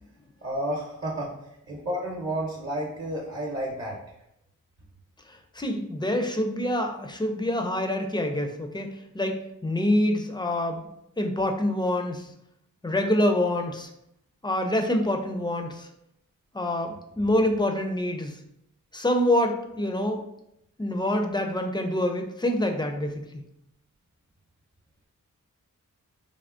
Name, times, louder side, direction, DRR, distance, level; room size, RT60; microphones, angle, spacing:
voice 1, 0.4-1.4 1.7-4.0, right 1 dB, 45° right, -3 dB, 0.7 m, -31 dB
voice 2, 5.3-8.9 9.1-10.9 11.2-12.3 12.8-13.9 14.4-15.9 16.5-18.4 18.9-20.2 20.8-23.2, left 1 dB, 15° left, 4 dB, 0.4 m, -26 dB
3.4 x 2.0 x 2.4 m, 0.79 s
cardioid pair, 55°, 34 cm